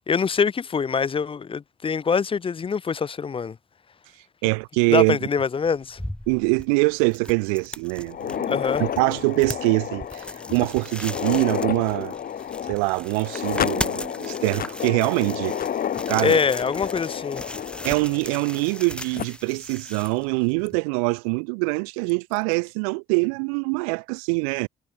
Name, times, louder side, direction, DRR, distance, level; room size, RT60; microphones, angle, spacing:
voice 1, 0.1-3.6 4.9-6.0 8.5-8.8 16.2-17.4, left 6 dB, 30° left, 0.5 m, -24 dB
voice 2, 4.4-5.2 6.3-10.3 10.5-12.2 12.7-15.6 16.1-16.4 17.8-24.7, right 36 dB, 80° right, 0.6 m, -24 dB
sound 1, 5.6-20.8, left 1 dB, 5° left, 2.2 m, -38 dB
sound 2, 8.0-18.8 19.2-19.3 20.1-20.2 20.7-20.8 22.1-22.4, left 9 dB, 55° left, 1.6 m, -31 dB
hypercardioid pair, 45°, 18 cm